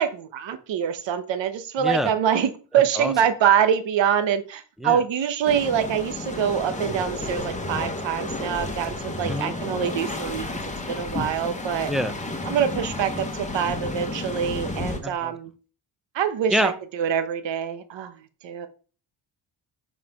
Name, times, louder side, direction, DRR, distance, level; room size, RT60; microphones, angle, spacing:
voice 1, 0.0-10.5 10.9-11.9 12.5-15.5 16.1-18.1 18.4-18.7, right 8 dB, 70° right, 10 dB, 1.0 m, -25 dB
voice 2, 1.8-2.1 3.0-3.1 4.8-5.0 9.3-9.6 11.9-12.1 15.0-15.3 16.5-16.7, equal, ahead, 10 dB, 0.6 m, -26 dB
sound 1, 5.4-15.0, left 2 dB, 15° left, 1.2 m, -32 dB
7.4 x 5.0 x 5.8 m, 0.38 s
wide cardioid pair, 170°, 45 cm